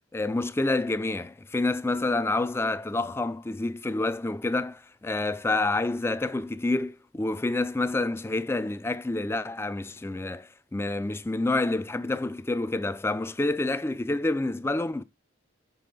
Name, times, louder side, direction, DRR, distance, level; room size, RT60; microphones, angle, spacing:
voice 1, 0.1-15.0, left 2 dB, 10° left, 0.3 m, -28 dB
7.0 x 4.5 x 4.0 m
head